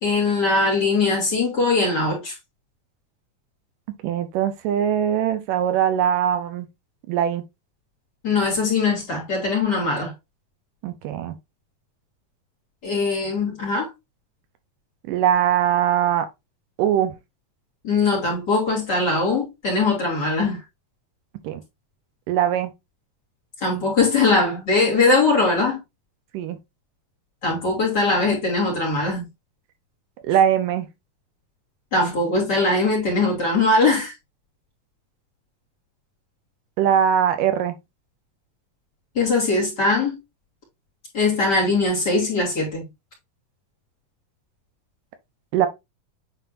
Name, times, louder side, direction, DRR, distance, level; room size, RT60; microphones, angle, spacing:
voice 1, 0.0-2.3 8.2-10.1 12.8-13.9 17.8-20.6 23.6-25.8 27.4-29.3 31.9-34.1 39.1-40.2 41.1-42.8, left 3 dB, 30° left, 3.2 m, -21 dB
voice 2, 4.0-6.7 7.1-7.4 10.8-11.4 15.1-16.3 16.8-17.1 21.4-21.6 22.3-22.7 26.3-26.6 30.2-30.9 36.8-37.7 45.5-45.7, right 9 dB, 80° right, 2.4 m, -21 dB
9.2 x 4.2 x 2.6 m
omnidirectional pair, 3.9 m